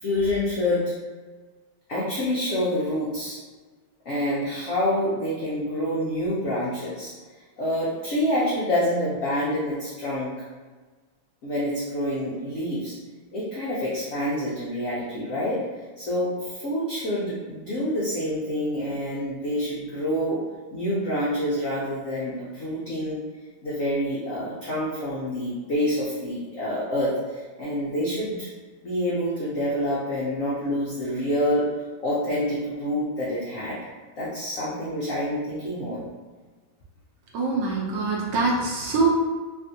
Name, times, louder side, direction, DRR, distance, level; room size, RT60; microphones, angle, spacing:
voice 1, 0.0-0.9 1.9-3.4 4.1-7.1 7.6-10.3 11.4-12.9 13.3-15.6 16.0-20.4 20.7-23.2 23.6-28.5 28.8-31.6 32.0-33.8 34.2-36.0, left 1 dB, 80° left, -8 dB, 0.7 m, -27 dB
voice 2, 37.3-39.1, right 3 dB, 75° right, -3 dB, 1.1 m, -24 dB
3.4 x 2.4 x 2.6 m, 1.4 s
omnidirectional pair, 2.2 m